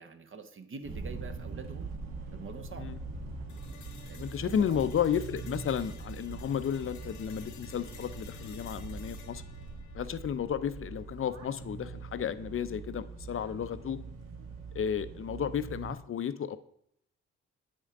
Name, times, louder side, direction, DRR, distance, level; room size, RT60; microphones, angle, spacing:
voice 1, 0.0-1.9 2.3-2.9 4.1-4.9, right 4 dB, 45° right, 8 dB, 0.8 m, -45 dB
sound 1, 0.8-16.0, right 3 dB, 65° right, 1.2 m, -43 dB
sound 2, 3.5-11.5, left 6 dB, 75° left, 1.0 m, -54 dB
voice 2, 4.2-9.4 9.9-14.0 14.7-16.6, left 8 dB, 45° left, 14 dB, 0.5 m, -32 dB
8.6 x 5.3 x 3.7 m, 0.72 s
supercardioid pair, 50°, 30 cm